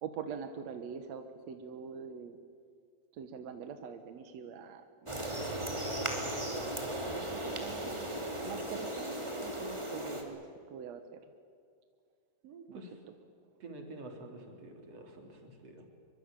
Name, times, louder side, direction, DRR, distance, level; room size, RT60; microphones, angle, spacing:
voice 1, 0.0-2.4 3.1-5.5 6.3-8.1 8.4-11.2 12.7-13.1, right 7 dB, 65° right, 7 dB, 1.8 m, -44 dB
sound 1, 5.1-10.2, right 1 dB, 10° right, 2.3 m, -37 dB
voice 2, 12.4-12.9 13.6-15.9, right 2 dB, 40° right, 3 dB, 4.3 m, -48 dB
24.0 x 24.0 x 9.0 m, 2.3 s
omnidirectional pair, 4.7 m